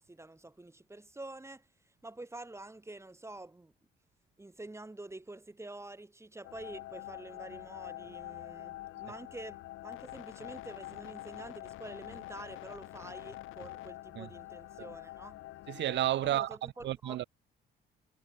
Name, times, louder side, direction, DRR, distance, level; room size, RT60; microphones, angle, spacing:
voice 1, 0.0-1.7 2.0-3.7 4.4-15.4 16.2-17.2, right 2 dB, 15° right, 2.4 m, -47 dB
sound 1, 6.4-16.5, left 16 dB, 85° left, 1.0 m, -46 dB
voice 2, 15.7-17.2, right 13 dB, 65° right, 0.6 m, -32 dB
cardioid pair, 90°, 20 cm